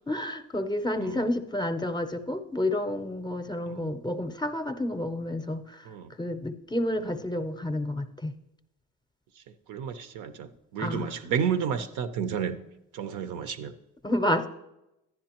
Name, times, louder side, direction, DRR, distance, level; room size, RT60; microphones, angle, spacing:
voice 1, 0.1-5.9 6.2-8.3 10.8-11.1 14.0-14.5, left 1 dB, 15° left, 9 dB, 0.6 m, -30 dB
voice 2, 9.7-12.6 12.9-13.7, right 7 dB, 85° right, 10 dB, 0.7 m, -31 dB
10.5 x 10.0 x 2.9 m, 0.90 s
cardioid pair, 90°, 30 cm